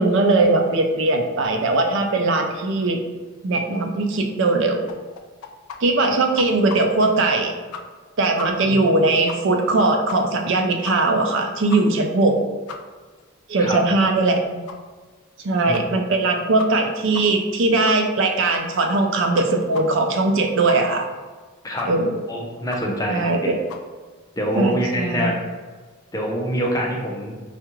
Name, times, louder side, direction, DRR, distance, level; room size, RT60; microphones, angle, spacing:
voice 1, 0.0-3.0 3.4-4.9 5.8-7.7 8.2-12.4 13.5-14.7 15.4-21.1 21.9-22.2 23.1-23.5 24.6-25.3, right 2 dB, 60° right, 3 dB, 0.4 m, -20 dB
sound 1, 4.9-5.8 6.0-6.1 6.4-7.1 7.4-7.5 7.7-8.1 8.4-8.5 8.8-8.9 9.3-9.4 9.7-9.8 10.1-10.4 10.8-10.9 11.3-11.4 11.7-11.8 12.2-12.3 12.7-12.8 13.2-13.3 13.7-13.8 14.1-14.2 14.7-14.8 15.2-15.3 15.7-15.8 16.2-16.3 16.6-16.9 17.1-17.2 17.5-17.6 17.9-18.2 18.5-18.6 19.0-19.1 19.4-19.5 19.7-19.8 20.2-20.3 20.7-20.8 21.2-21.3 21.8-21.9 22.2-22.3 22.7-22.8 23.2-23.3 23.7-23.8, left 7 dB, 80° left, 0.4 m, -35 dB
voice 2, 22.3-23.3 24.4-25.3 26.1-27.4, equal, 15° left, -1 dB, 0.5 m, -25 dB
4.6 x 2.4 x 2.9 m, 1.4 s
head